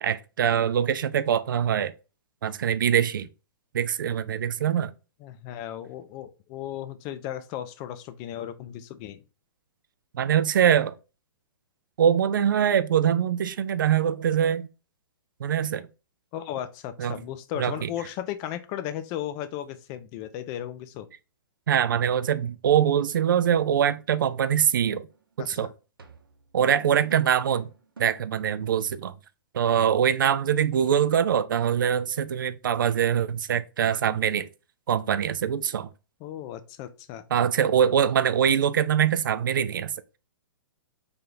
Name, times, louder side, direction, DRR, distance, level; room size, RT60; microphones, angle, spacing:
voice 1, 0.0-1.9 2.4-3.3 3.7-4.9 10.1-10.9 12.0-14.7 15.4-15.9 17.0-17.2 17.6-17.9 21.7-25.1 25.4-25.7 26.5-27.7 28.0-29.1 29.5-34.5 34.9-35.9 37.3-39.9, right 8 dB, 65° right, 0.4 m, -23 dB
voice 2, 5.2-9.2 16.3-21.1 25.4-25.7 36.2-37.2, left 11 dB, 30° left, 0.4 m, -35 dB
sound 1, 25.1-25.3 26.0-28.4, right 4 dB, 85° right, 0.8 m, -48 dB
3.4 x 2.7 x 3.8 m
hypercardioid pair, 120°, 12 cm